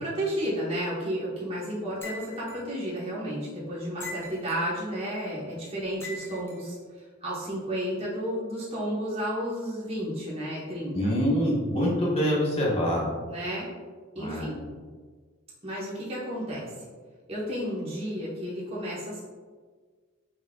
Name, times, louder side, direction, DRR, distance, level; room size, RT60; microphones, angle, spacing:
voice 1, 0.0-6.8 7.2-11.1 13.3-13.7 14.1-14.6 15.6-16.9 17.3-19.2, equal, 30° right, -7 dB, 1.1 m, -32 dB
sound 1, 2.0-2.6 4.0-4.7 6.0-6.6, left 2 dB, 15° left, 0.5 m, -41 dB
voice 2, 10.9-13.1 14.2-14.5, equal, 30° left, -4 dB, 1.2 m, -25 dB
5.6 x 3.6 x 2.3 m, 1.5 s
head